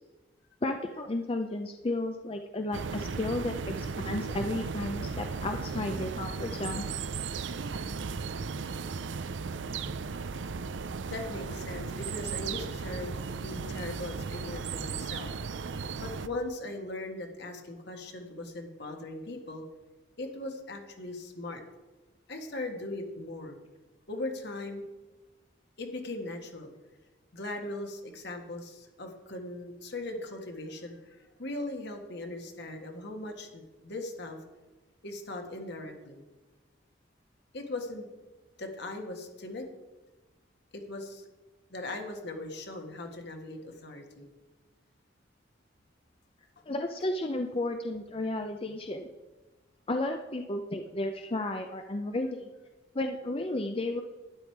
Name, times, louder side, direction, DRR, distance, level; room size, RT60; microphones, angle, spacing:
voice 1, 0.6-6.9 46.7-49.1 49.9-52.5 52.9-54.0, left 2 dB, 30° left, 5 dB, 0.6 m, -33 dB
sound 1, 2.7-16.3, right 5 dB, 70° right, 0.5 m, -36 dB
voice 2, 11.1-15.6 16.0-19.6 20.2-21.6 22.3-23.6 24.1-24.9 25.8-26.7 27.3-34.4 35.0-36.2 37.5-38.1 38.6-39.7 40.7-41.2 41.7-44.3, left 2 dB, 60° left, 3 dB, 1.8 m, -39 dB
12.0 x 10.5 x 4.7 m, 1.2 s
head